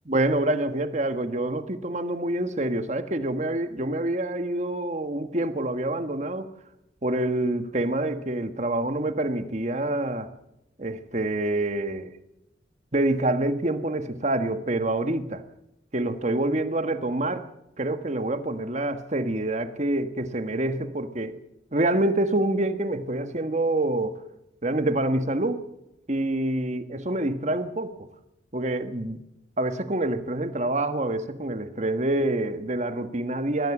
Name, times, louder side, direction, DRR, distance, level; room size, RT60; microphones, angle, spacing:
voice 1, 0.1-6.5 7.0-10.3 10.8-12.1 12.9-15.4 15.9-17.4 17.8-21.4 21.7-24.2 24.6-25.6 26.1-27.9 28.5-29.2 29.6-33.7, right 1 dB, 40° right, 9 dB, 1.5 m, -26 dB
22.5 x 16.0 x 7.3 m, 0.84 s
head